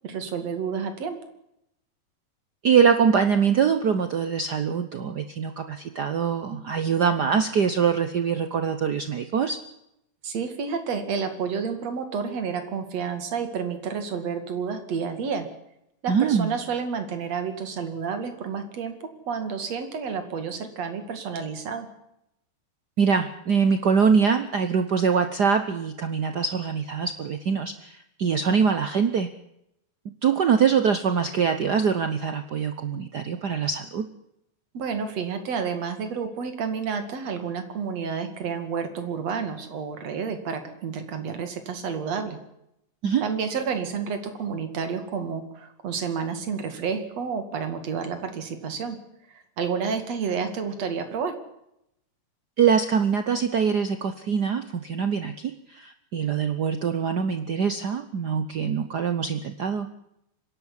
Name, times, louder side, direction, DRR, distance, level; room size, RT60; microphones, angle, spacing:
voice 1, 0.0-1.2 10.2-15.5 16.0-18.9 19.3-21.9 34.7-42.4 43.2-49.0 49.6-51.3, right 6 dB, 60° right, 8 dB, 3.4 m, -30 dB
voice 2, 2.6-9.6 16.1-16.5 23.0-29.3 30.2-34.0 43.0-43.2 52.6-59.9, right 6 dB, 85° right, 9 dB, 0.9 m, -23 dB
25.0 x 11.5 x 9.8 m, 0.81 s
omnidirectional pair, 3.3 m